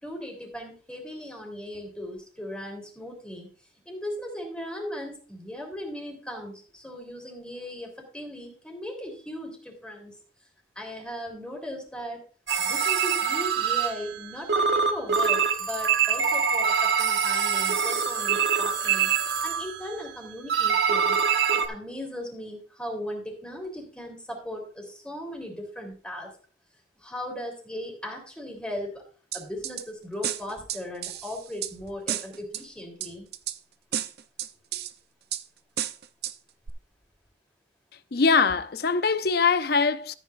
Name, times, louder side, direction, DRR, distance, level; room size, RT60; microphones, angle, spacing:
voice 1, 0.0-3.5 3.8-10.2 10.7-12.2 12.6-19.1 19.4-21.2 21.5-26.3 27.0-29.0 29.3-33.3, left 1 dB, 5° left, 3.5 m, -37 dB
sound 1, 12.5-14.2 14.5-20.1 20.5-21.7, right 7 dB, 80° right, 1.3 m, -24 dB
sound 2, 29.3-29.8 30.2-31.7 32.1-32.6 33.0-33.6 33.9-34.9 35.3-35.4 35.8-36.3 36.7-36.8, right 10 dB, 60° right, 0.6 m, -32 dB
voice 2, 38.1-40.1, left 5 dB, 60° left, 0.6 m, -22 dB
13.5 x 9.4 x 2.6 m
head